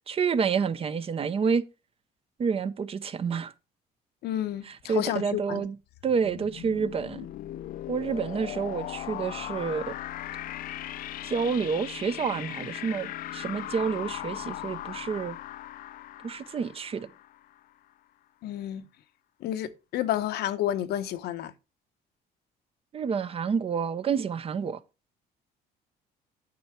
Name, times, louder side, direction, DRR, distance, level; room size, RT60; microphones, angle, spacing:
voice 1, 0.1-1.6 2.4-3.5 4.6-5.8 6.0-7.3 7.9-9.9 11.2-15.4 16.2-17.1 22.9-24.8, right 6 dB, 35° right, 0.6 m, -29 dB
voice 2, 4.2-5.6 18.4-18.8 19.4-21.5, left 12 dB, 75° left, 0.8 m, -30 dB
sound 1, 5.9-17.6, left 13 dB, 60° left, 0.4 m, -38 dB
8.5 x 5.6 x 4.4 m
cardioid pair, 110°, 17 cm